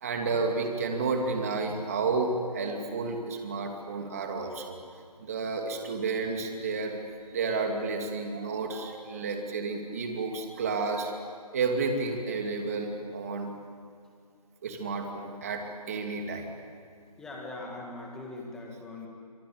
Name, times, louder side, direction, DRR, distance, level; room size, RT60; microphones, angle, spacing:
voice 1, 0.0-4.8 5.2-7.0 7.3-11.2 11.5-12.9 13.1-13.5 14.6-16.5, right 4 dB, 20° right, 3 dB, 2.7 m, -31 dB
voice 2, 17.2-19.1, left 2 dB, ahead, 0 dB, 1.6 m, -41 dB
27.0 x 25.5 x 8.6 m, 2.3 s
figure-of-eight pair, 165°, 21 cm